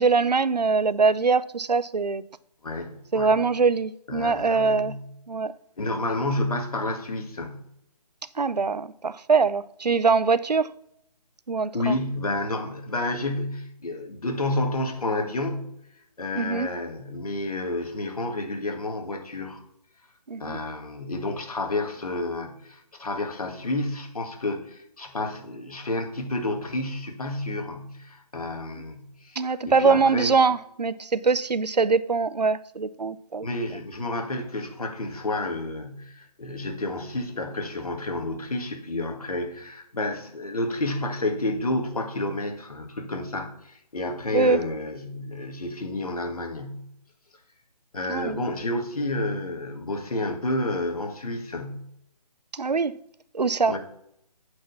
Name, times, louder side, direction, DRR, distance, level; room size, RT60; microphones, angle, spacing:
voice 1, 0.0-2.2 3.1-5.0 5.3-5.5 8.4-10.7 11.5-12.0 16.4-16.7 20.3-20.6 29.4-33.5 44.3-44.6 48.1-48.4 52.5-53.0 53.3-53.8, right 4 dB, 80° right, 0.6 m, -23 dB
voice 2, 2.6-3.3 4.1-5.0 5.8-7.6 11.7-15.7 16.2-19.6 20.4-30.3 33.4-46.8 47.9-51.8 53.7-53.8, left 2 dB, 60° left, 1.9 m, -30 dB
8.6 x 5.0 x 5.8 m
figure-of-eight pair, 145°, 21 cm